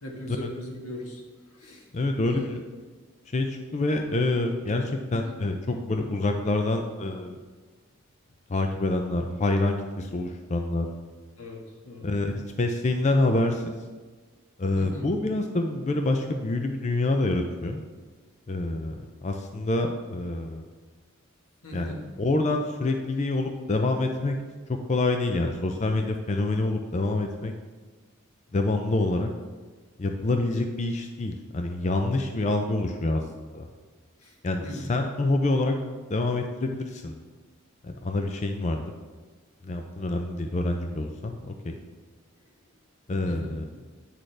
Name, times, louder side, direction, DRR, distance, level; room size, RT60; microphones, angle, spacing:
voice 1, 0.0-1.2 1.5-1.8 2.2-2.5 5.1-5.3 11.4-12.1 14.7-15.1 21.6-22.0 34.2-34.3 34.6-34.9 43.2-43.5, left 1 dB, 90° left, -1 dB, 1.6 m, -39 dB
voice 2, 1.9-2.6 3.3-7.4 8.5-10.9 12.0-13.7 14.6-17.8 18.5-18.9 19.2-20.6 21.7-24.4 24.7-27.5 28.5-29.3 30.0-33.6 34.4-35.8 36.1-37.2 37.8-38.9 39.6-41.8 43.1-43.7, left 2 dB, 35° left, 4 dB, 0.4 m, -27 dB
9.0 x 6.3 x 3.3 m, 1.4 s
head